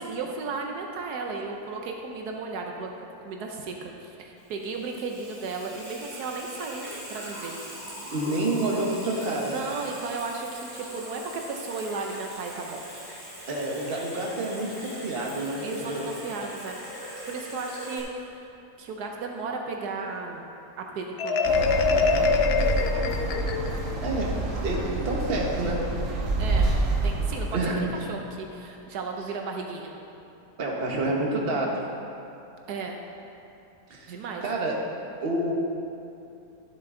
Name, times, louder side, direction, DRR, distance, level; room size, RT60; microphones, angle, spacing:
voice 1, 0.0-2.9 3.2-7.5 9.5-12.8 15.6-16.8 17.3-18.5 18.8-20.5 20.8-22.4 26.4-26.7 27.0-29.9 32.7-33.0 34.1-34.5, right 4 dB, 80° right, 2 dB, 1.3 m, -35 dB
Water tap faucet / Sink (filling or washing), 4.4-18.0, equal, 15° right, 2.3 m, -41 dB
voice 2, 8.1-9.5 13.5-16.1 24.0-25.8 27.5-27.8 30.6-31.8 33.9-34.1 34.4-34.7 35.2-35.5, right 2 dB, 40° right, -2 dB, 1.3 m, -28 dB
Marimba xylophone, 21.2-24.0, left 4 dB, 65° left, 0.6 m, -24 dB
sound 1, 21.4-27.7, right 2 dB, 55° right, 1.5 m, -28 dB
12.5 x 7.7 x 3.8 m, 2.7 s
omnidirectional pair, 1.7 m